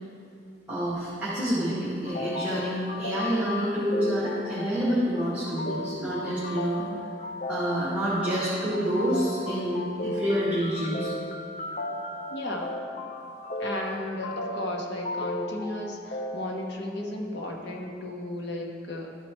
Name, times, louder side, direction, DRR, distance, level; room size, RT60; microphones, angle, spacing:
voice 1, 0.7-6.8 7.5-11.1, equal, 5° right, -11 dB, 1.6 m, -28 dB
sound 1, 2.1-16.5, left 2 dB, 45° left, 0.6 m, -35 dB
voice 2, 12.3-12.8 13.6-19.2, left 1 dB, 75° left, -1 dB, 1.1 m, -34 dB
12.5 x 4.5 x 4.4 m, 2.6 s
head